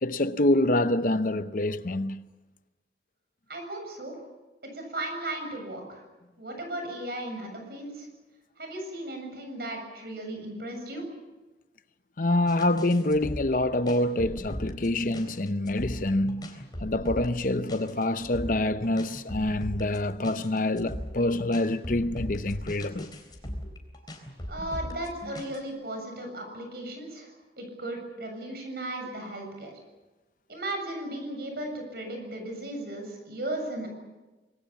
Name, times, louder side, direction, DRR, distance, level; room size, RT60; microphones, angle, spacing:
voice 1, 0.0-2.2 12.2-23.1, left 1 dB, 50° left, 0.8 m, -26 dB
voice 2, 3.5-4.2 4.7-6.0 6.4-8.1 8.6-11.0 24.5-29.7 30.5-33.9, right 1 dB, 60° right, 7.3 m, -36 dB
sound 1, 12.5-25.6, equal, 25° left, 3.8 m, -38 dB
26.0 x 21.0 x 7.2 m
head